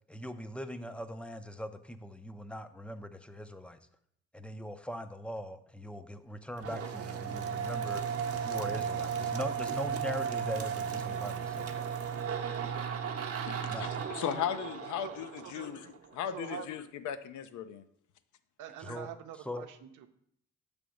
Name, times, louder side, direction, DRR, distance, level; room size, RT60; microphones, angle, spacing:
voice 1, 0.1-3.8 4.3-8.0 8.3-11.9 13.7-13.9 18.8-19.1 19.5-19.7, equal, 5° left, 10 dB, 0.4 m, -41 dB
sound 1, 6.6-16.1, right 7 dB, 50° right, 0.8 m, -35 dB
voice 2, 13.5-17.8 18.9-19.0, left 9 dB, 75° left, 11 dB, 0.6 m, -37 dB
voice 3, 15.4-15.9 16.3-16.7 18.6-20.1, right 10 dB, 85° right, 7 dB, 0.7 m, -45 dB
6.9 x 3.5 x 6.2 m, 0.71 s
cardioid pair, 90°, 30 cm